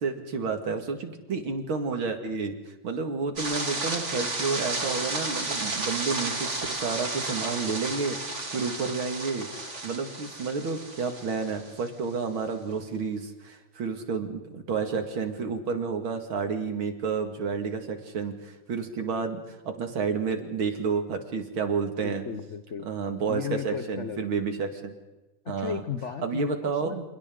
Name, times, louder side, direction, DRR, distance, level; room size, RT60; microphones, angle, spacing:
voice 1, 0.0-22.2 22.8-25.0 25.5-25.8 26.2-27.1, right 5 dB, 70° right, 6 dB, 2.8 m, -30 dB
sound 1, 3.4-11.9, right 2 dB, 30° right, 3.1 m, -33 dB
voice 2, 22.0-22.9 23.3-24.3 25.4-27.2, left 7 dB, 60° left, 10 dB, 0.7 m, -35 dB
29.0 x 28.0 x 3.8 m, 1.1 s
omnidirectional pair, 2.4 m